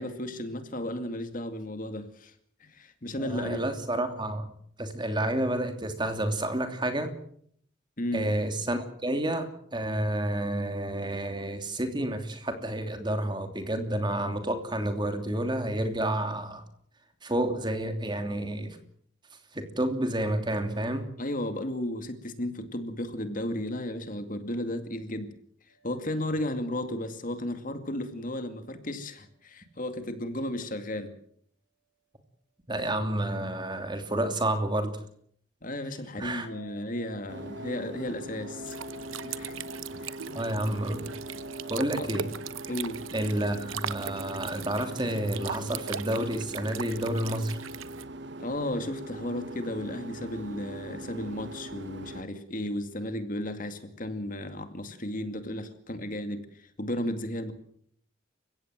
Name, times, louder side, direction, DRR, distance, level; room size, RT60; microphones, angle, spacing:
voice 1, 0.0-2.3 2.6-3.7 8.0-8.3 21.2-25.3 25.8-31.1 35.6-38.8 39.2-39.6 40.0-40.4 42.0-42.1 42.7-43.0 48.4-57.5, left 1 dB, 45° left, 8 dB, 2.4 m, -34 dB
voice 2, 3.2-4.5 4.8-7.1 8.1-16.6 17.2-18.8 19.5-21.1 32.7-35.0 36.2-36.5 40.3-41.1 41.7-42.3 43.1-47.6, right 1 dB, 25° right, 7 dB, 2.9 m, -30 dB
sound 1, 25.7-28.9 29.1-29.2 36.4-44.4, left 2 dB, 70° left, 3.1 m, -52 dB
sound 2, 37.3-52.2, right 1 dB, 60° right, 1.1 m, -41 dB
sound 3, 38.7-48.1, right 8 dB, 90° right, 0.9 m, -40 dB
29.5 x 16.0 x 7.6 m, 0.65 s
head